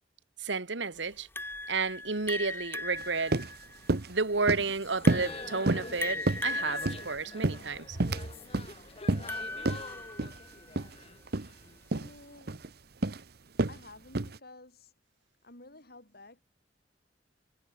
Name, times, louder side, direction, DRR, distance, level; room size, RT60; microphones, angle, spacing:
voice 1, 0.4-1.3 1.7-3.4 4.1-8.0, right 4 dB, 75° right, 1.7 m, -32 dB
sound 1, 1.4-10.6, left 2 dB, 10° left, 2.1 m, -39 dB
sound 2, 3.0-3.1 3.3-3.5 3.9-4.1 4.5-4.7 5.1-5.3 5.7-5.9 6.3-7.1 7.4-8.3 8.5-8.7 9.1-9.3 9.7-9.8 10.2-10.4 10.8-10.9 11.3-11.5 11.9-12.1 12.5-12.7 13.0-13.2 13.6-13.8 14.1-14.4, right 2 dB, 55° right, 1.1 m, -29 dB
sound 3, 4.8-11.8, left 3 dB, 35° left, 2.1 m, -46 dB
voice 2, 11.9-12.8 13.7-14.9 15.4-16.4, left 2 dB, 55° left, 5.8 m, -52 dB
head